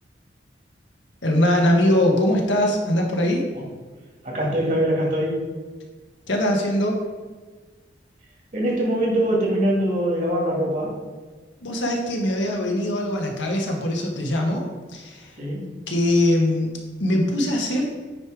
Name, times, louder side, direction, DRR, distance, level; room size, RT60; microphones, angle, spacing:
voice 1, 1.2-3.4 6.3-7.0 11.6-14.6 14.9-15.3 15.9-16.7 17.0-17.9, left 1 dB, 90° left, 0 dB, 1.4 m, -21 dB
voice 2, 4.2-5.4 8.5-10.9 15.4-15.7, right 1 dB, 45° right, -3 dB, 2.1 m, -23 dB
9.5 x 3.3 x 4.8 m, 1.4 s
head